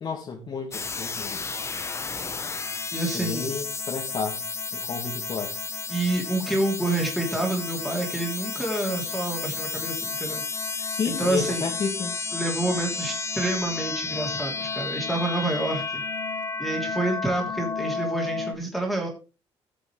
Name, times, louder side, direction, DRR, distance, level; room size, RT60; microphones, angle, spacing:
voice 1, 0.0-1.4 3.1-4.4 4.7-5.5 10.9-12.1, left 5 dB, 45° left, 0 dB, 1.9 m, -31 dB
sound 1, 0.7-18.6, left 4 dB, 25° left, 0.9 m, -32 dB
voice 2, 2.9-3.5 5.9-10.4 10.8-11.6 12.3-16.0 16.6-19.1, right 2 dB, ahead, -1 dB, 3.0 m, -28 dB
16.5 x 6.2 x 3.2 m, 0.32 s
cardioid pair, 115°, 11 cm